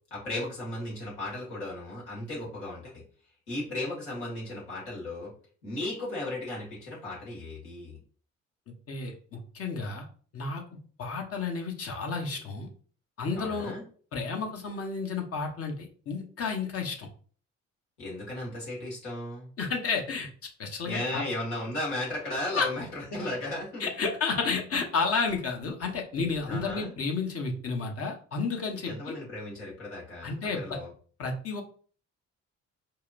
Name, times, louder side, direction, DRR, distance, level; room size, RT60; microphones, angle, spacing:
voice 1, 0.1-2.9 3.5-5.3 5.6-8.0 13.4-13.8 18.0-19.5 20.8-23.9 26.5-26.9 28.8-30.9, left 1 dB, 70° left, -5 dB, 1.9 m, -35 dB
voice 2, 8.9-10.1 10.3-10.6 11.0-12.7 13.2-13.7 14.1-17.1 19.6-20.3 20.6-21.2 22.5-22.7 23.8-29.1 30.2-30.8 31.2-31.6, left 4 dB, 40° left, 2 dB, 1.0 m, -31 dB
4.6 x 2.9 x 2.5 m, 0.43 s
figure-of-eight pair, 45°, 38 cm